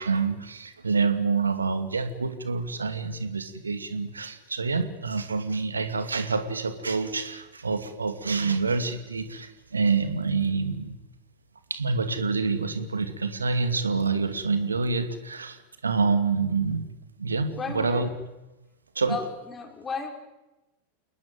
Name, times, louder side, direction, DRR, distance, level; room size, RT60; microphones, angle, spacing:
voice 1, 0.0-10.9 11.7-16.9 17.2-18.1 18.9-19.2, right 4 dB, 75° right, 9 dB, 2.6 m, -27 dB
voice 2, 17.6-18.1 19.1-20.1, left 5 dB, 20° left, 4 dB, 5.2 m, -34 dB
29.0 x 20.0 x 9.4 m, 1.0 s
figure-of-eight pair, 90°, 0 cm